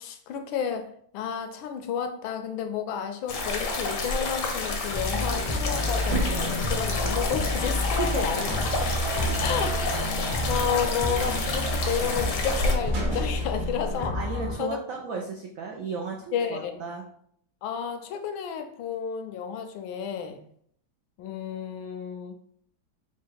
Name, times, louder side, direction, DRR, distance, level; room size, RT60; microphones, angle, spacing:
voice 1, 0.0-8.5 8.8-14.2 14.6-14.8 16.3-16.8 17.6-20.4 21.2-22.4, left 7 dB, 85° left, 1.4 m, -32 dB
sound 1, 3.3-12.7, left 3 dB, 60° left, 0.8 m, -30 dB
sound 2, 4.9-14.5, left 1 dB, 30° left, 0.4 m, -30 dB
sound 3, 6.0-14.0, equal, 70° right, 1.9 m, -32 dB
voice 2, 8.0-8.6 9.0-9.4 14.1-17.0, right 4 dB, 85° right, 0.7 m, -34 dB
4.3 x 2.3 x 4.7 m
omnidirectional pair, 2.1 m